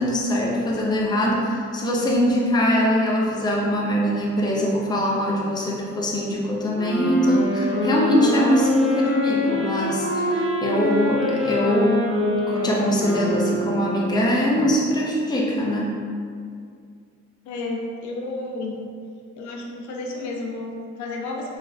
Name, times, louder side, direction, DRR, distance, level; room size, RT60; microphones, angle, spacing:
voice 1, 0.0-16.0, equal, 15° left, -3 dB, 0.5 m, -22 dB
sound 1, 6.7-14.4, left 1 dB, 45° right, 0.7 m, -25 dB
voice 2, 17.5-18.8 19.4-21.6, left 2 dB, 70° left, -1 dB, 0.5 m, -31 dB
3.1 x 2.4 x 2.3 m, 2.2 s
cardioid pair, 90°, 30 cm